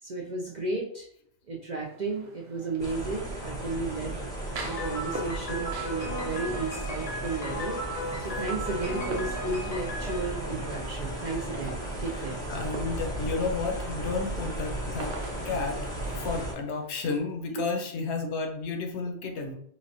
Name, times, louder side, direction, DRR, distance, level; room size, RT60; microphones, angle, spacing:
voice 1, 0.0-1.1 1.5-4.2 4.6-7.8 8.2-12.4, right 3 dB, 60° right, -2 dB, 0.5 m, -34 dB
sound 1, 1.8-17.2, right 4 dB, 85° right, 0.9 m, -46 dB
sound 2, 2.8-16.5, right 1 dB, 5° left, 0.6 m, -35 dB
Piano, 4.6-11.4, equal, 40° left, 0.6 m, -36 dB
voice 2, 12.5-15.1 15.4-19.5, left 4 dB, 75° left, 4 dB, 0.9 m, -32 dB
3.9 x 2.1 x 2.6 m, 0.67 s
omnidirectional pair, 1.2 m